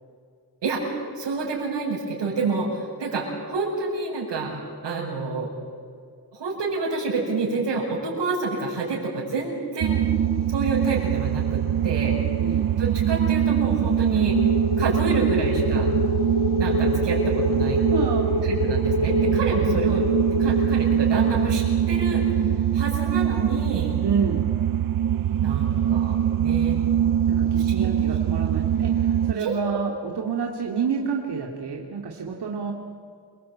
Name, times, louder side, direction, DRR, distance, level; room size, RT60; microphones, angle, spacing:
voice 1, 0.6-5.5 6.3-10.0 10.5-14.4 14.8-15.9 16.6-17.8 18.4-20.0 20.4-24.0 25.4-26.8 27.6-27.9 29.4-29.8, right 3 dB, 85° right, -7 dB, 6.3 m, -28 dB
sound 1, 9.8-29.3, right 10 dB, 50° right, 0.6 m, -23 dB
sound 2, 14.2-22.2, left 3 dB, 75° left, 2.7 m, -27 dB
voice 2, 17.9-18.5 24.0-24.5 27.3-32.7, right 6 dB, 70° right, 0 dB, 2.8 m, -29 dB
28.5 x 21.5 x 8.9 m, 2.2 s
wide cardioid pair, 100°, 41 cm